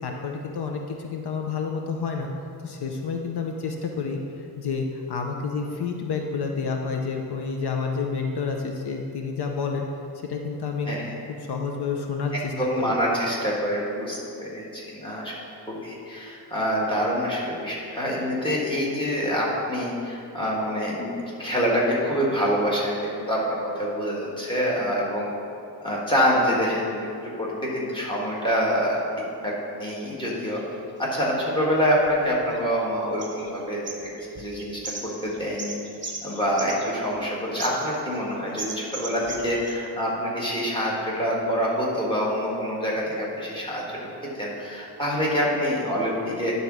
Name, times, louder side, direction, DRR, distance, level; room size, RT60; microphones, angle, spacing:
voice 1, 0.0-2.3 2.6-9.9 10.2-10.9 11.5-12.9, left 5 dB, 70° left, 2 dB, 0.7 m, -29 dB
voice 2, 12.3-15.4 15.7-25.3 25.8-30.6 31.0-35.8 36.2-44.1 44.4-46.5, equal, 10° left, -5 dB, 1.6 m, -26 dB
sound 1, 30.4-30.7 31.3-32.9 33.2-33.6 33.8-37.2 37.6-38.2 38.6-39.7, right 3 dB, 30° right, 0.9 m, -38 dB
9.7 x 4.1 x 6.0 m, 2.7 s
wide cardioid pair, 160°, 40 cm